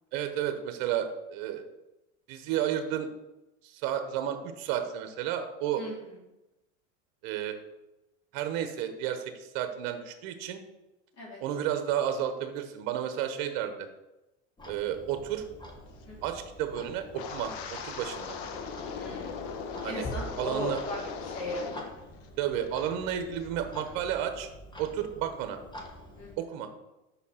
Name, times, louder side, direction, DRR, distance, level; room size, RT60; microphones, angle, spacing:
voice 1, 0.1-1.6 2.3-3.1 3.6-5.8 7.2-7.5 8.3-10.6 11.4-13.9 14.7-15.4 16.2-18.4 19.8-20.1 20.4-20.8 22.4-24.5 24.8-25.6 26.4-26.7, right 10 dB, 60° right, 8 dB, 0.9 m, -32 dB
Clock, 14.6-26.4, left 1 dB, 10° left, 1.0 m, -46 dB
Wind, 17.1-22.0 22.2-22.7 23.1-23.4, left 6 dB, 65° left, 0.9 m, -39 dB
voice 2, 18.9-19.5 19.8-21.6 26.1-26.4, left 1 dB, 40° left, -3 dB, 2.5 m, -38 dB
5.6 x 4.1 x 5.6 m, 0.97 s
supercardioid pair, 110°, 39 cm